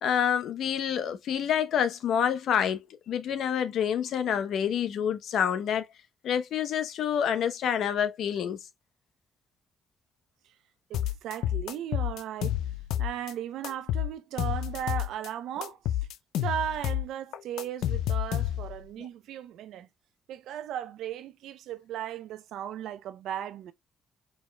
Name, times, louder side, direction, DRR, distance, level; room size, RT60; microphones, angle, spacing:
voice 1, 0.0-5.9 6.2-8.6, left 8 dB, 70° left, 0.9 m, -27 dB
sound 1, 10.9-13.3 13.6-15.3 15.6-18.8, left 12 dB, 90° left, 0.4 m, -30 dB
voice 2, 10.9-12.6 13.0-16.0 16.4-19.9 20.3-23.7, right 11 dB, 85° right, 0.6 m, -36 dB
4.7 x 4.0 x 2.2 m
cardioid pair, 90°, 0 cm